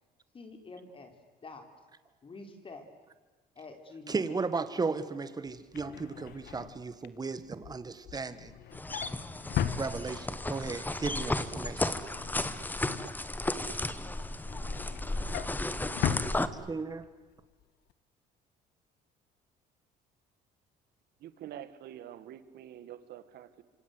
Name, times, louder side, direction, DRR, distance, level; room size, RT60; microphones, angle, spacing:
voice 1, 0.3-1.1 1.4-1.7 2.2-2.8 3.6-4.3, left 3 dB, 30° left, 5 dB, 4.3 m, -47 dB
voice 2, 4.1-8.5 9.6-12.0 16.5-17.1, right 4 dB, 25° right, 13 dB, 1.8 m, -35 dB
Drawer open or close, 5.5-10.5 10.9-11.2 11.5-13.7 14.1-17.1 17.4-17.6 17.9-18.0, left 10 dB, 75° left, 1.8 m, -38 dB
sound 1, 8.7-16.5, left 2 dB, 10° left, 1.5 m, -34 dB
voice 3, 21.2-23.6, right 11 dB, 70° right, 13 dB, 2.1 m, -46 dB
26.5 x 26.5 x 8.1 m, 1.3 s
cardioid pair, 110°, 17 cm